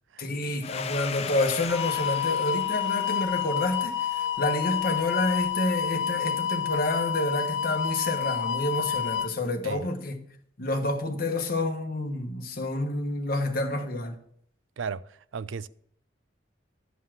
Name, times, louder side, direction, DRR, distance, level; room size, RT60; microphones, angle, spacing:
voice 1, 0.2-10.2 10.6-14.2, left 2 dB, 50° left, 1.3 m, -29 dB
Domestic sounds home sounds, 0.6-5.0, left 5 dB, 35° left, 0.5 m, -38 dB
sound 1, 1.7-9.3, left 9 dB, 75° left, 0.9 m, -29 dB
voice 2, 14.8-15.7, right 6 dB, 85° right, 0.4 m, -35 dB
11.5 x 5.6 x 6.2 m
head